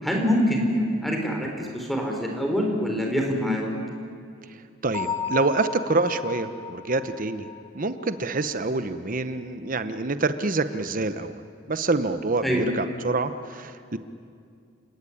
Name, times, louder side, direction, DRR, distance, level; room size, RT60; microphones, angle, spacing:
voice 1, 0.0-3.7 12.4-12.7, equal, ahead, 1 dB, 4.0 m, -25 dB
voice 2, 4.5-7.5 7.7-11.3 11.7-14.0, right 3 dB, 40° right, 11 dB, 0.9 m, -26 dB
Bell, 4.9-8.6, left 5 dB, 25° left, 2.1 m, -34 dB
29.0 x 17.5 x 10.0 m, 2.3 s
head